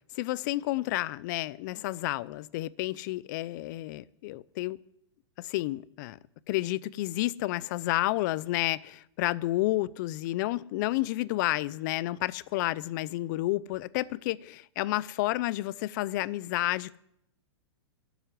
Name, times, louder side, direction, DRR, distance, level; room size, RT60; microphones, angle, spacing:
voice 1, 0.1-4.8 5.4-6.2 6.5-17.0, left 17 dB, 45° left, 0.5 m, -30 dB
12.5 x 8.2 x 9.3 m
hypercardioid pair, 145°, 14 cm